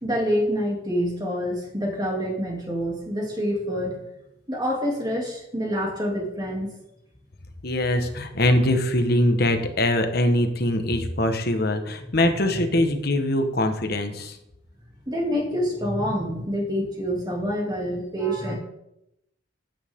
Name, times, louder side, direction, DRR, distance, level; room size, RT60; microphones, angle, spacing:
voice 1, 0.0-4.0 4.5-6.7 15.1-18.6, equal, 20° right, -1 dB, 2.7 m, -27 dB
voice 2, 7.6-14.4, left 1 dB, 55° left, 6 dB, 1.3 m, -22 dB
13.0 x 9.4 x 3.7 m, 0.84 s
head